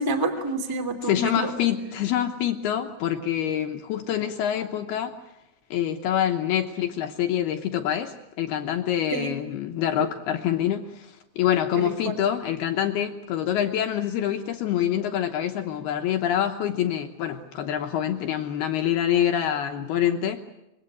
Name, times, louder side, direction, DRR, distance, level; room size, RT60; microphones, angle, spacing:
voice 1, 0.0-1.5 9.1-9.3 10.0-10.1 11.8-12.1, right 2 dB, 10° right, 7 dB, 0.9 m, -28 dB
voice 2, 1.0-5.1 5.7-20.4, left 10 dB, 80° left, 5 dB, 2.3 m, -26 dB
25.5 x 23.0 x 8.2 m, 0.94 s
omnidirectional pair, 5.9 m